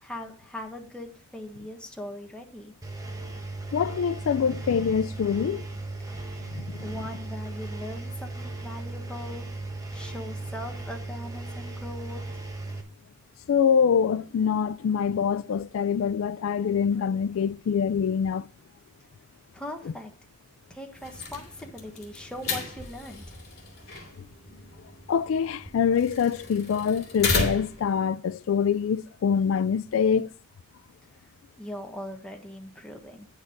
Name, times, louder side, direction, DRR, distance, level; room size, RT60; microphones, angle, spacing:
voice 1, 0.0-2.7 6.2-9.5 9.9-12.4 19.5-20.1 20.7-23.4 31.6-33.3, left 1 dB, 5° left, 1.4 m, -40 dB
Engine, 2.8-12.8, right 2 dB, 15° right, 1.1 m, -37 dB
voice 2, 3.7-5.6 6.5-6.9 13.5-18.5 25.1-30.3, left 7 dB, 85° left, 0.4 m, -25 dB
sound 1, 20.9-27.9, left 3 dB, 55° left, 2.5 m, -34 dB
9.2 x 6.4 x 5.1 m
head